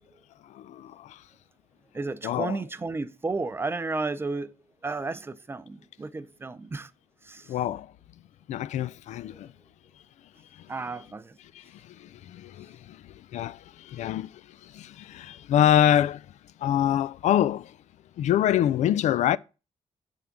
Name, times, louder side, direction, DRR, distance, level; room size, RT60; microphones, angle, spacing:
voice 1, 0.4-1.2 2.2-2.6 7.5-7.9 8.5-9.5 10.5-10.7 11.5-16.3 16.6-17.8 18.2-19.4, left 11 dB, 70° left, 0.4 m, -26 dB
voice 2, 1.9-4.5 4.8-6.9 7.2-7.5 10.7-11.4, right 3 dB, 20° right, 0.5 m, -33 dB
7.3 x 3.6 x 5.8 m
cardioid pair, 120°, 12 cm